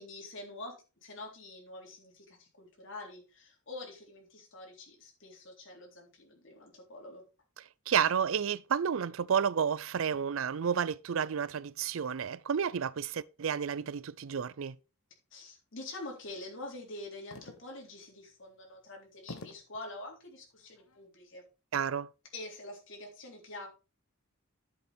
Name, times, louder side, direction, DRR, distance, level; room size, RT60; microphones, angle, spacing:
voice 1, 0.0-7.2 15.3-21.4 22.3-23.7, left 2 dB, 60° left, 3.7 m, -46 dB
voice 2, 7.9-14.8 21.7-22.1, right 7 dB, 65° right, 0.4 m, -31 dB
sound 1, 17.3-17.9 18.4-18.5 19.3-19.8 20.6-21.0, left 2 dB, 80° left, 1.1 m, -47 dB
11.0 x 8.1 x 3.4 m
head